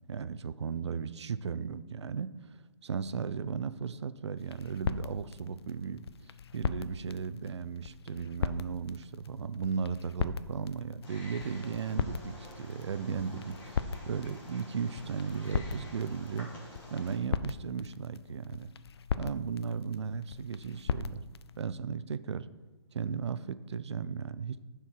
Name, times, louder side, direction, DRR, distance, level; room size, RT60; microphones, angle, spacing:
voice 1, 0.1-6.1 6.5-16.5 16.9-18.7 19.2-21.2 21.6-22.5 22.9-24.6, right 6 dB, 65° right, 15 dB, 0.5 m, -36 dB
sound 1, 4.4-21.6, left 6 dB, 60° left, 0.5 m, -39 dB
Wild animals, 11.0-17.2, left 1 dB, 10° left, 1.6 m, -49 dB
10.0 x 4.6 x 4.6 m, 1.2 s
hypercardioid pair, 160°, 15 cm